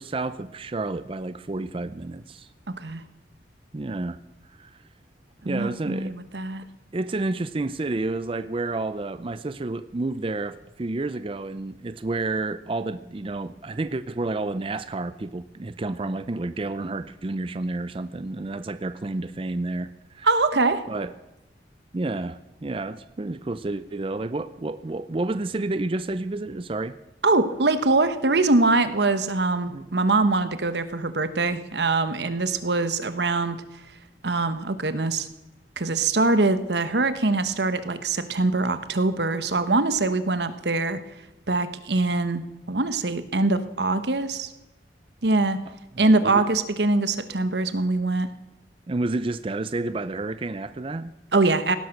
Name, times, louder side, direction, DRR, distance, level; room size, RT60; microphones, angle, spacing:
voice 1, 0.0-2.5 3.7-4.2 4.6-4.8 5.4-6.1 6.9-19.9 20.1-20.3 20.9-21.1 21.9-27.0 29.7-29.8 46.0-46.4 48.9-51.2, right 2 dB, 30° right, 13 dB, 0.5 m, -30 dB
voice 2, 5.4-6.6 20.2-20.8 27.2-33.6 34.2-35.3 35.8-41.0 41.5-42.4 42.7-44.5 45.2-45.6 46.0-48.3 51.3-51.8, right 3 dB, 75° right, 11 dB, 1.2 m, -23 dB
17.5 x 11.0 x 6.5 m, 1.0 s
head